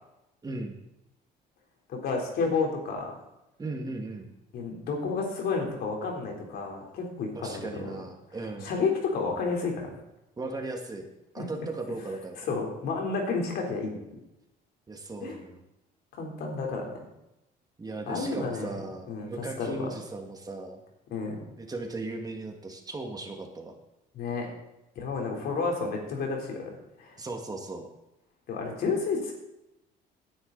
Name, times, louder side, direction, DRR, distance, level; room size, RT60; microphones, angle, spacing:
voice 1, 0.4-0.8 3.6-4.3 7.4-8.7 10.4-11.1 11.3-12.5 14.9-15.6 17.8-20.8 21.6-23.7 27.2-27.9, right 2 dB, 20° right, 3 dB, 2.1 m, -37 dB
voice 2, 1.9-3.1 4.5-7.7 8.6-9.9 11.4-11.5 12.4-13.9 15.2-15.4 16.1-17.0 18.1-18.8 19.1-19.9 21.1-21.4 24.1-24.5 25.0-26.7 27.0-27.1 28.5-29.3, left 4 dB, 70° left, 1 dB, 3.9 m, -31 dB
17.0 x 10.0 x 4.1 m, 0.90 s
cardioid pair, 110°, 17 cm